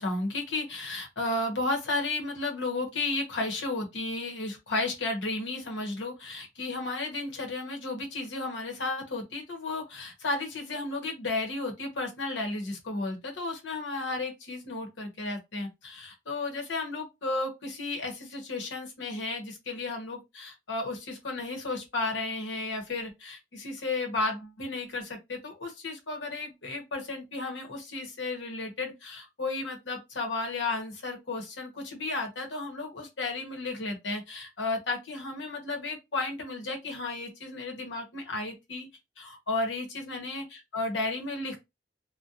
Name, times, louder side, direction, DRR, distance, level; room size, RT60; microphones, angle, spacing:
voice 1, 0.0-38.9 39.2-41.6, left 2 dB, 65° left, 0.9 m, -33 dB
2.4 x 2.1 x 2.6 m
head